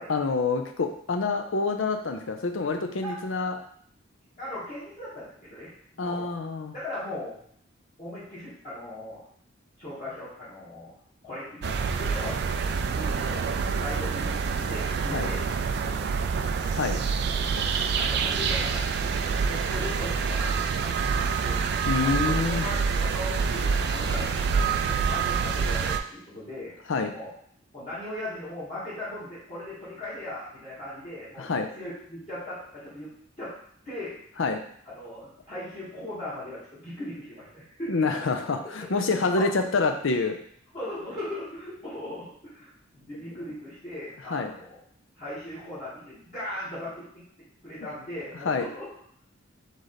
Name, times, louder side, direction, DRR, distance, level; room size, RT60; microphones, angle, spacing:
voice 1, 0.1-3.6 6.0-6.7 15.1-15.3 16.7-17.0 21.9-22.7 26.9-27.1 31.4-31.7 34.4-34.6 37.9-40.4 44.3-44.5 48.4-48.6, left 4 dB, 80° left, 5 dB, 0.6 m, -27 dB
voice 2, 4.4-6.3 6.7-7.4 8.0-9.2 9.8-10.9 11.2-16.6 17.5-18.9 19.2-21.7 22.0-26.7 27.1-27.3 27.7-33.1 33.4-33.5 33.8-34.2 34.9-38.1 38.8-39.6 40.7-44.8 45.2-47.2 47.6-48.9, left 1 dB, 35° left, -13 dB, 1.9 m, -39 dB
sound 1, 11.6-26.0, right 5 dB, 55° right, 0.3 m, -27 dB
4.0 x 3.3 x 4.0 m, 0.63 s
head